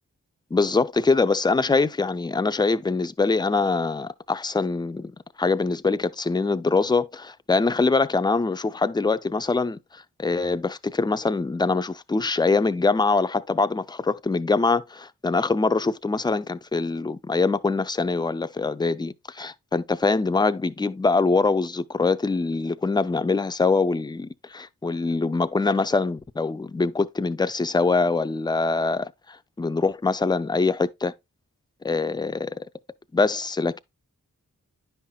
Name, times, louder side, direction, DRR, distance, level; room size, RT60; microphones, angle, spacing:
voice 1, 0.5-31.1 31.8-32.7 33.1-33.8, left 3 dB, 15° left, 0.4 m, -24 dB
10.0 x 5.7 x 2.3 m
wide cardioid pair, 75°, 33 cm